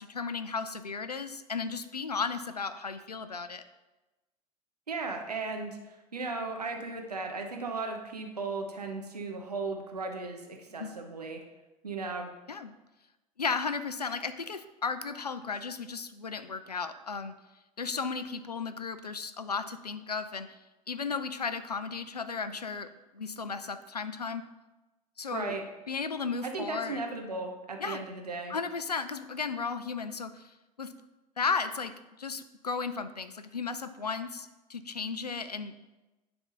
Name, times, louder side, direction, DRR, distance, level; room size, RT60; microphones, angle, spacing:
voice 1, 0.0-3.6 10.8-10.9 12.5-12.7 13.4-17.3 17.8-20.5 20.9-22.9 23.1-24.4 25.2-25.5 25.9-27.0 27.8-28.0 28.5-30.4 30.8-30.9 31.4-31.9 32.2-35.8, left 5 dB, 90° left, 12 dB, 0.4 m, -34 dB
voice 2, 4.9-11.4 11.8-12.3 25.3-25.6 26.4-28.6, right 3 dB, 85° right, 3 dB, 0.9 m, -36 dB
10.5 x 3.5 x 3.9 m, 1.1 s
figure-of-eight pair, 75°, 20 cm